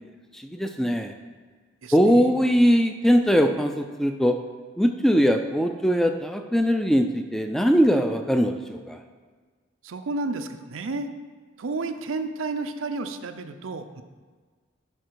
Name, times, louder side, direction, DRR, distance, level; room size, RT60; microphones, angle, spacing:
voice 1, 0.3-1.1 1.9-4.4 4.8-9.0, equal, ahead, 5 dB, 0.3 m, -21 dB
voice 2, 1.8-2.3 9.8-11.1 11.6-14.0, right 3 dB, 90° right, 8 dB, 0.6 m, -31 dB
11.5 x 4.1 x 4.7 m, 1.5 s
head